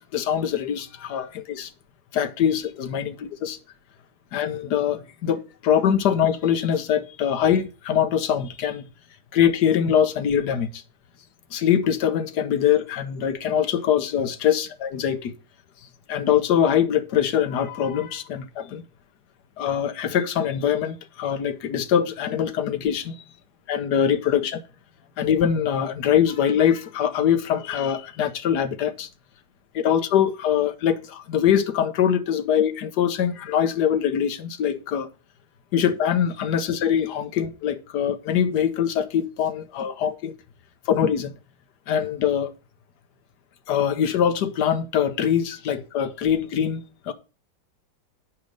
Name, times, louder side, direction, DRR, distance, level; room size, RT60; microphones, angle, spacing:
voice 1, 0.0-1.7 2.1-3.6 4.3-8.8 9.3-10.8 11.5-15.3 16.1-18.8 19.6-23.2 23.7-24.6 25.2-29.1 29.7-35.1 35.7-40.3 40.9-41.3 41.9-42.5 43.7-47.1, left 9 dB, 65° left, 1.4 m, -23 dB
7.4 x 5.1 x 6.5 m
omnidirectional pair, 2.0 m